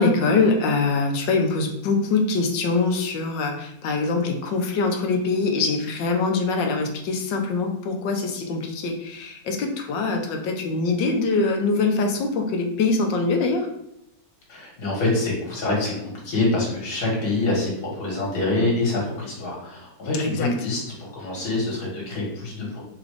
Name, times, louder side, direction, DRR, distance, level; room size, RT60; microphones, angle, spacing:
voice 1, 0.0-13.7 20.2-20.5, left 3 dB, 85° left, 3 dB, 1.4 m, -23 dB
voice 2, 14.5-22.8, left 2 dB, 60° left, -3 dB, 2.0 m, -26 dB
4.0 x 2.5 x 4.8 m, 0.79 s
omnidirectional pair, 2.0 m